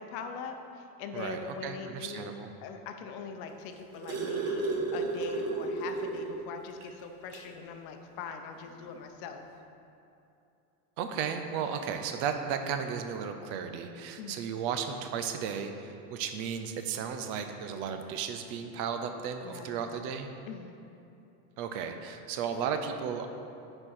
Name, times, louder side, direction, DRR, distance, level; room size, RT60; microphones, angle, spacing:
voice 1, 0.0-2.3 2.6-9.5 11.7-11.8 14.2-14.4 19.4-19.8 20.5-20.8, left 5 dB, 50° left, 6 dB, 0.8 m, -42 dB
voice 2, 1.1-2.5 11.0-20.3 21.6-23.3, right 7 dB, 55° right, 7 dB, 0.7 m, -34 dB
sound 1, 3.5-6.4 6.8-6.9 7.3-7.5 8.6-8.7, right 3 dB, 70° right, 1.6 m, -33 dB
8.6 x 4.5 x 4.3 m, 2.7 s
supercardioid pair, 115°, 46 cm